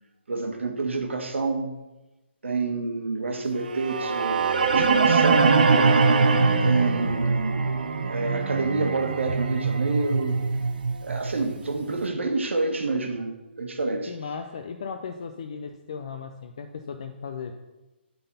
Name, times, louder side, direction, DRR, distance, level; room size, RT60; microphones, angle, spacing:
voice 1, 0.3-1.8 2.4-5.9 6.6-7.8 8.1-10.4 11.0-14.1, right 3 dB, 90° right, 4 dB, 1.4 m, -28 dB
sound 1, 3.7-11.8, right 4 dB, 45° right, 0.7 m, -22 dB
voice 2, 14.1-17.6, left 5 dB, 30° left, 6 dB, 0.4 m, -36 dB
11.5 x 4.0 x 5.5 m, 1.1 s
hypercardioid pair, 175°, 6 cm